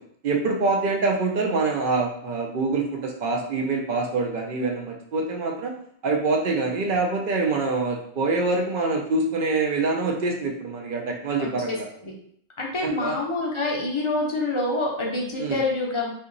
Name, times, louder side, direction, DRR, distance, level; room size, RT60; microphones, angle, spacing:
voice 1, 0.2-5.7 6.0-11.9 12.8-13.2 15.4-15.6, right 3 dB, 60° right, 1 dB, 0.5 m, -25 dB
voice 2, 11.4-11.8 12.0-12.1 12.6-16.1, left 2 dB, 35° left, -2 dB, 0.5 m, -26 dB
2.8 x 2.6 x 3.8 m, 0.66 s
omnidirectional pair, 1.4 m